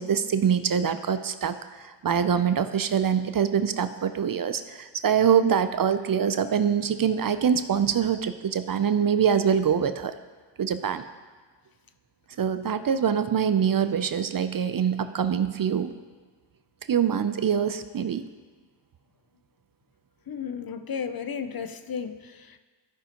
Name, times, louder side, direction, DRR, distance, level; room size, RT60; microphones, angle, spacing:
voice 1, 0.0-10.1 10.6-11.0 12.4-15.9 16.9-18.3, right 7 dB, 50° right, 11 dB, 0.5 m, -24 dB
voice 2, 20.3-22.6, left 6 dB, 50° left, 9 dB, 0.6 m, -34 dB
14.0 x 5.6 x 2.9 m, 1.4 s
cardioid pair, 55°, 46 cm